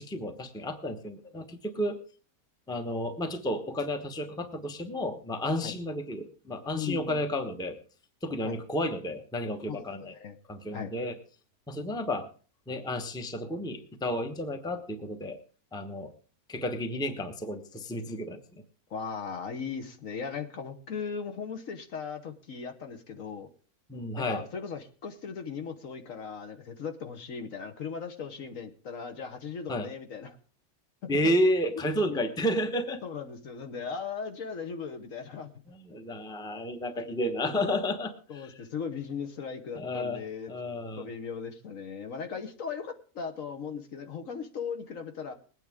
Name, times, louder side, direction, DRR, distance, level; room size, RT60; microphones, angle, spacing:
voice 1, 0.0-2.0 2.7-7.8 8.2-10.1 10.5-11.2 11.7-12.3 12.7-15.4 15.7-16.1 16.5-18.6 23.9-24.4 29.7-29.9 31.1-33.0 35.7-38.5 39.7-40.2 40.5-41.1, left 1 dB, 5° left, 6 dB, 0.9 m, -31 dB
voice 2, 6.7-7.2 8.4-8.6 9.7-10.4 10.7-10.9 18.9-23.5 24.2-30.4 32.1-32.2 33.0-35.5 38.3-40.5 41.0-45.3, left 6 dB, 60° left, 6 dB, 1.4 m, -38 dB
21.0 x 9.1 x 3.6 m, 0.38 s
omnidirectional pair, 1.6 m